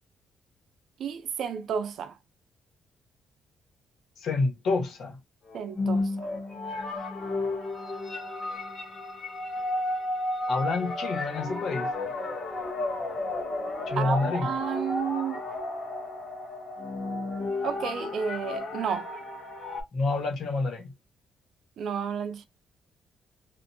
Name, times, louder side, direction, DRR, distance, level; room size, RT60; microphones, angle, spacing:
voice 1, 1.0-2.2 5.5-6.3 14.0-15.4 17.6-19.1 21.8-22.5, right 7 dB, 70° right, 0.5 m, -31 dB
voice 2, 4.2-5.2 10.5-11.9 13.9-14.5 19.9-20.9, left 3 dB, 70° left, 1.3 m, -28 dB
sound 1, 5.5-19.8, left 2 dB, 45° left, 0.9 m, -33 dB
2.5 x 2.2 x 2.7 m
cardioid pair, 90°, 0 cm